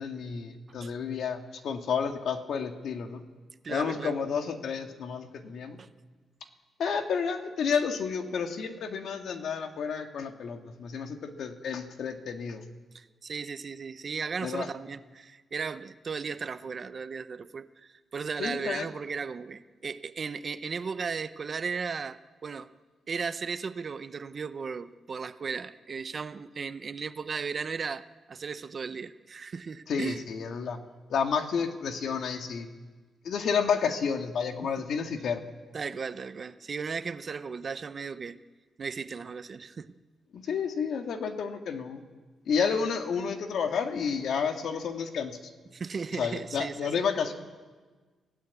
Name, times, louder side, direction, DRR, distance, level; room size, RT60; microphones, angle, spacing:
voice 1, 0.0-3.2 3.7-5.8 6.8-12.6 14.4-14.7 18.4-18.8 29.9-30.8 31.1-32.7 33.2-35.4 40.3-42.0 42.5-45.4 46.1-47.3, left 6 dB, 60° left, 5 dB, 1.9 m, -30 dB
voice 2, 3.6-4.1 5.8-5.9 12.9-22.7 23.1-28.0 28.3-30.2 34.6-34.8 35.7-38.4 38.8-39.9 45.7-47.0, right 5 dB, 35° right, 12 dB, 0.7 m, -36 dB
28.5 x 16.5 x 8.3 m, 1.4 s
wide cardioid pair, 160°, 0 cm